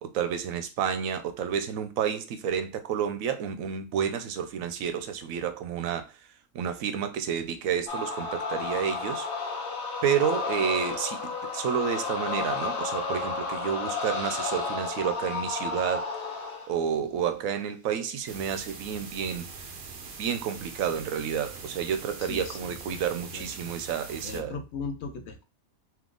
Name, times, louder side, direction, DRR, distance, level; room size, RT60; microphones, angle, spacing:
voice 1, 0.0-6.1 6.5-9.3 10.0-16.1 16.7-19.5 20.2-24.6, right 8 dB, 80° right, 1.0 m, -30 dB
sound 1, 7.9-16.8, left 4 dB, 80° left, 1.1 m, -32 dB
sound 2, 18.3-24.4, right 4 dB, 55° right, 0.9 m, -42 dB
voice 2, 22.2-23.7 24.2-25.4, left 4 dB, 60° left, 0.9 m, -39 dB
3.6 x 2.9 x 3.7 m
omnidirectional pair, 1.4 m